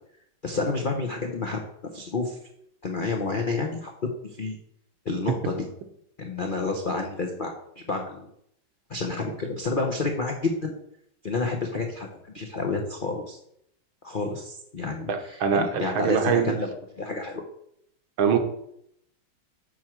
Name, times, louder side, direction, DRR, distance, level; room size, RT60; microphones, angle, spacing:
voice 1, 0.4-1.6 1.9-2.4 2.8-3.9 4.4-4.6 5.0-5.7 6.2-7.5 7.9-8.3 8.9-10.7 11.2-13.4 14.0-17.4, left 3 dB, 80° left, 2 dB, 0.4 m, -29 dB
voice 2, 15.1-16.5 18.2-18.4, right 7 dB, 80° right, 6 dB, 1.7 m, -23 dB
6.9 x 4.5 x 6.0 m, 0.73 s
omnidirectional pair, 2.3 m